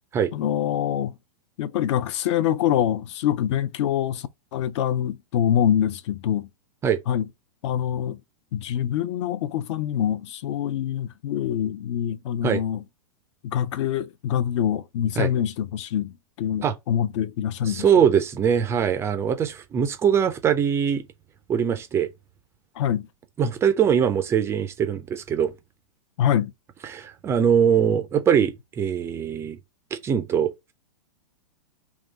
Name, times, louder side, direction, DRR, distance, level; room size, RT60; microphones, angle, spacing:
voice 1, 0.3-1.2 1.6-6.5 7.1-7.3 7.6-8.2 8.5-12.8 13.4-17.9 22.8-23.1 26.2-26.5, left 10 dB, 50° left, 0.5 m, -25 dB
voice 2, 17.7-21.0 21.5-22.1 23.4-25.5 26.9-29.6 29.9-30.5, right 8 dB, 15° right, 0.4 m, -22 dB
3.7 x 2.9 x 4.0 m
hypercardioid pair, 155°, 20 cm